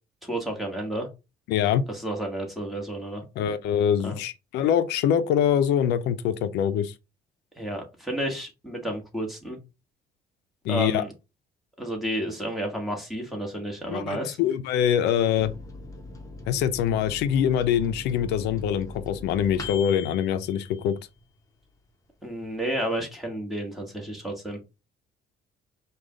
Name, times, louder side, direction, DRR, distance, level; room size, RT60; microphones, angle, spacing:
voice 1, 0.2-1.1 1.9-3.2 4.0-4.1 7.6-9.6 10.7-11.1 11.8-14.4 22.2-24.6, right 1 dB, ahead, 1.5 m, -31 dB
voice 2, 1.5-1.8 3.4-6.9 10.6-11.0 13.9-15.5 16.5-21.0, left 9 dB, 85° left, 0.5 m, -24 dB
Microwave oven, 15.4-21.4 21.8-21.9 22.2-22.8, left 3 dB, 20° left, 1.0 m, -41 dB
4.9 x 2.3 x 3.7 m
cardioid pair, 110°, 17 cm